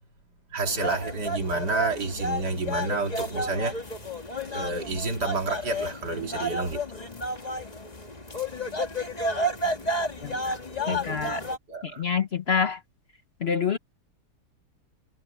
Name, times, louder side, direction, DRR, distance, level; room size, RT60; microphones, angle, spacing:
voice 1, 0.5-3.8 4.5-7.1 8.7-8.8 9.6-9.9 10.9-11.3 11.7-12.0, right 3 dB, 75° right, 3.3 m, -30 dB
sound 1, 0.7-11.6, equal, 25° left, 1.8 m, -31 dB
voice 2, 10.2-10.6 10.9-11.4 11.8-12.8 13.4-13.8, left 6 dB, 45° left, 1.0 m, -27 dB
omnidirectional pair, 1.8 m